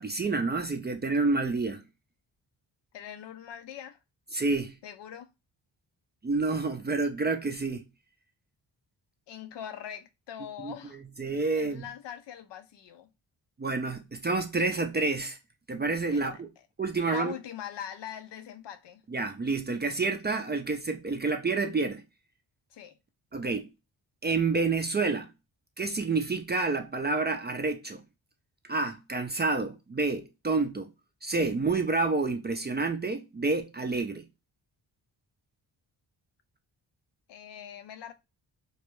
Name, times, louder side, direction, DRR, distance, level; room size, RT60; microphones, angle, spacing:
voice 1, 0.0-1.8 4.3-4.8 6.2-7.8 10.6-10.7 11.2-11.9 13.6-15.4 15.7-16.5 16.8-17.3 19.1-22.0 23.3-23.7 24.2-25.3 25.8-28.0 28.7-30.9 31.2-34.2, right 3 dB, 25° right, 0.4 m, -28 dB
voice 2, 2.9-4.0 4.8-5.3 9.3-11.0 11.5-13.1 16.1-16.6 17.0-19.0 22.7-23.0 37.3-38.1, left 9 dB, 60° left, 0.5 m, -42 dB
2.3 x 2.1 x 3.0 m
cardioid pair, 50°, 48 cm